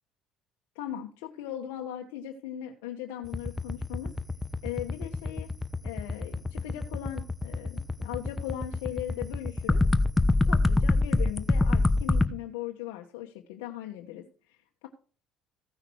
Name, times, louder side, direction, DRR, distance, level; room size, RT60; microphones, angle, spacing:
voice 1, 0.7-4.1 4.6-5.5 5.8-9.8 10.5-14.9, left 11 dB, 85° left, 1 dB, 1.2 m, -39 dB
sound 1, 3.3-12.3, left 2 dB, 15° left, 1.0 m, -25 dB
16.0 x 6.0 x 4.6 m, 0.38 s
supercardioid pair, 90°, 0 cm